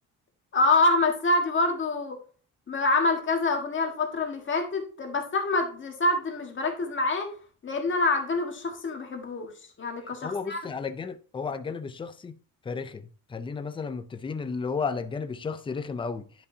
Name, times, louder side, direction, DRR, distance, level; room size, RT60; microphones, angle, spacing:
voice 1, 0.5-2.2 2.7-7.3 7.6-9.5 9.8-10.6, left 2 dB, 35° left, 1.6 m, -26 dB
voice 2, 10.2-12.3 12.7-16.5, left 5 dB, 15° left, 0.4 m, -33 dB
11.0 x 5.3 x 2.7 m
cardioid pair, 160°, 35 cm